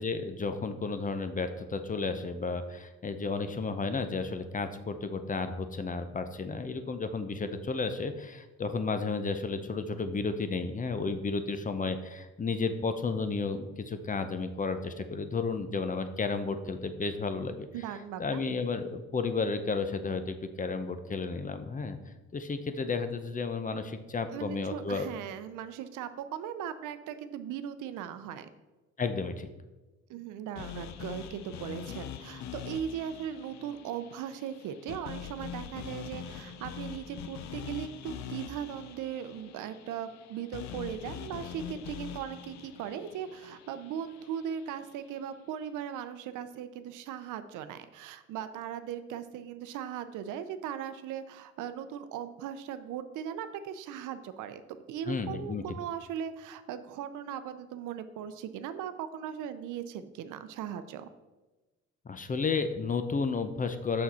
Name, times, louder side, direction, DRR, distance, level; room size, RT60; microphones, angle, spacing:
voice 1, 0.0-17.7 18.2-22.0 22.3-25.1 29.0-29.5 55.1-55.6 62.1-64.0, left 4 dB, 25° left, 9 dB, 0.6 m, -32 dB
voice 2, 17.7-18.4 24.3-28.5 30.1-54.6 54.9-61.1, right 9 dB, 90° right, 11 dB, 0.6 m, -38 dB
sound 1, 30.6-44.7, left 8 dB, 65° left, 0.6 m, -43 dB
6.3 x 5.9 x 4.2 m, 1.1 s
cardioid pair, 90°, 30 cm